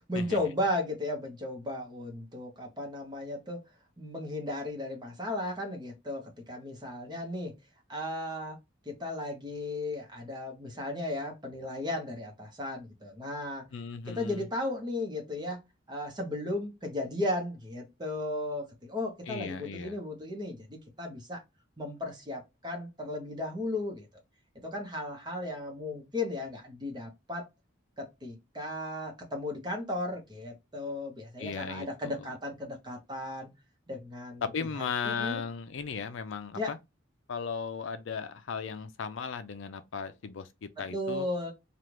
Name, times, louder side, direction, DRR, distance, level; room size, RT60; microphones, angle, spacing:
voice 1, 0.1-3.6 4.0-7.5 7.9-8.6 8.8-13.7 14.0-15.6 15.9-21.4 21.8-24.1 24.6-27.5 28.0-33.5 33.9-34.4 34.7-35.4 36.5-36.7 40.9-41.5, left 1 dB, 20° right, 1.0 m, -35 dB
voice 2, 13.7-14.4 19.3-20.0 31.4-32.3 34.4-36.8 37.3-41.3, left 5 dB, 65° left, 0.4 m, -36 dB
3.4 x 2.4 x 2.9 m
head